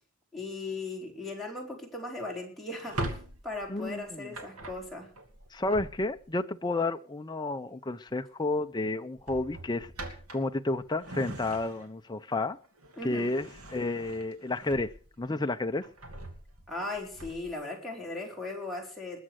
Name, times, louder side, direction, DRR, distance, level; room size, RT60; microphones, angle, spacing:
voice 1, 0.3-3.2 3.4-5.1 13.0-13.4 16.7-19.2, left 2 dB, ahead, -3 dB, 4.6 m, -38 dB
Drawer open or close, 2.7-6.4 7.9-8.2 8.5-8.7 9.2-12.1 12.5-15.3 15.7-17.6, right 1 dB, 85° right, 2.7 m, -42 dB
voice 2, 3.7-4.3 5.5-12.6 13.0-15.9, left 2 dB, 20° left, 7 dB, 0.6 m, -31 dB
20.5 x 7.5 x 6.4 m, 0.41 s
head